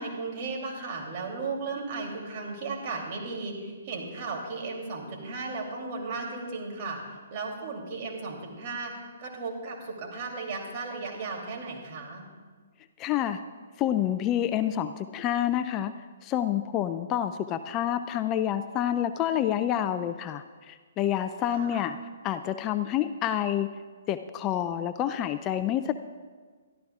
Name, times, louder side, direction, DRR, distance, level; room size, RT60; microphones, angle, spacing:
voice 1, 0.0-7.0 7.3-8.9 9.2-12.2 21.5-21.8, right 3 dB, 40° right, 0 dB, 2.9 m, -35 dB
voice 2, 13.0-13.4 13.8-15.9 16.2-22.0 22.2-23.7 24.1-25.9, left 11 dB, 25° left, 11 dB, 0.4 m, -28 dB
22.5 x 13.0 x 2.4 m, 1.5 s
hypercardioid pair, 135°, 0 cm